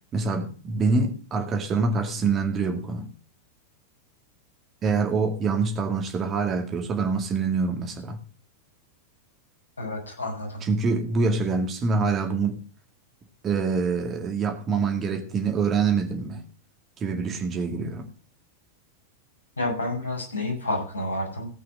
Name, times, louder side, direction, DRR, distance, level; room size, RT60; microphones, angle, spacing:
voice 1, 0.1-3.1 4.8-8.2 10.6-12.6 13.4-16.4 17.0-18.0, right 4 dB, 25° right, 2.2 m, -25 dB
voice 2, 9.8-10.7 19.6-21.5, left 2 dB, 75° left, 6.6 m, -29 dB
16.5 x 6.0 x 6.4 m
figure-of-eight pair, 90°, 0 cm